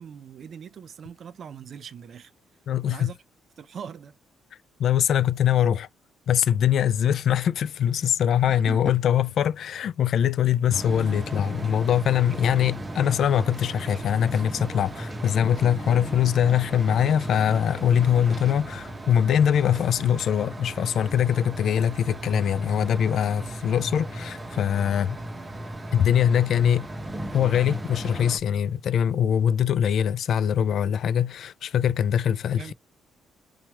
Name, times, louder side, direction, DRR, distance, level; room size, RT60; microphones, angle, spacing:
voice 1, 0.0-2.3 2.9-3.2 3.6-4.2 8.5-9.0 23.4-23.6 32.6-32.7, right 7 dB, 55° right, 0.4 m, -41 dB
voice 2, 2.7-3.1 4.8-5.9 6.3-25.2 25.9-26.9 27.3-32.7, left 9 dB, 65° left, 0.3 m, -23 dB
sound 1, 10.7-28.4, right 1 dB, 20° right, 0.7 m, -36 dB
2.9 x 2.2 x 2.9 m
cardioid pair, 90°, 0 cm